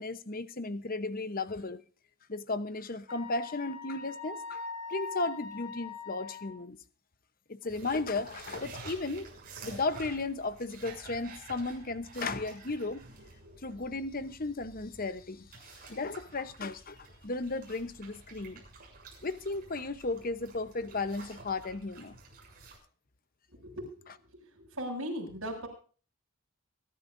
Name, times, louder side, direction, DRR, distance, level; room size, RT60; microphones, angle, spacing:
voice 1, 0.0-1.8 2.3-4.6 4.9-6.8 7.5-9.3 9.6-13.0 13.6-15.5 15.9-17.0 17.2-18.6 19.2-22.1, left 3 dB, 40° left, 0.9 m, -35 dB
Wind instrument woodwind instrument, 3.1-6.6, left 4 dB, 90° left, 4.2 m, -41 dB
sound 1, 7.7-22.8, right 3 dB, 40° right, 7.0 m, -50 dB
voice 2, 23.6-24.1 24.5-25.7, equal, 65° right, 6.8 m, -38 dB
24.0 x 12.0 x 2.7 m
head